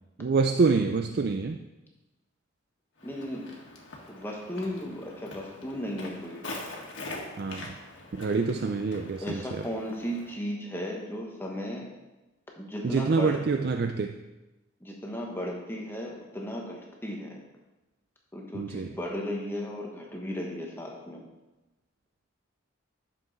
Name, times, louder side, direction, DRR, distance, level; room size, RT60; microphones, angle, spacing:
voice 1, 0.2-1.6 7.4-7.7 8.1-9.7 12.8-14.2 18.5-19.0, right 4 dB, 50° right, 6 dB, 0.4 m, -26 dB
Walk footsteps, 3.0-10.4, left 2 dB, 65° left, 1.7 m, -43 dB
voice 2, 3.0-3.5 4.1-6.4 9.2-11.9 12.6-13.3 14.8-17.4 18.3-21.2, equal, 10° left, -1 dB, 1.1 m, -35 dB
11.0 x 7.0 x 4.0 m, 1.1 s
head